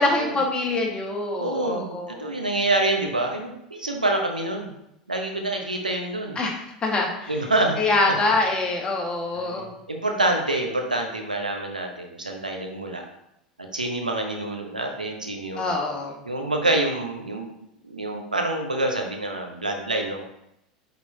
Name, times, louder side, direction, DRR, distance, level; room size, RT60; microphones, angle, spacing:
voice 1, 0.0-2.3 6.3-6.5 6.8-7.3 7.8-9.7 15.6-16.2, left 2 dB, 25° left, 0 dB, 1.6 m, -24 dB
voice 2, 1.4-4.7 5.1-6.4 7.3-7.8 9.3-13.0 13.6-15.7 16.2-17.5 17.8-20.2, right 2 dB, 90° right, 2 dB, 0.9 m, -26 dB
8.3 x 4.1 x 2.8 m, 0.80 s
figure-of-eight pair, 80°, 4 cm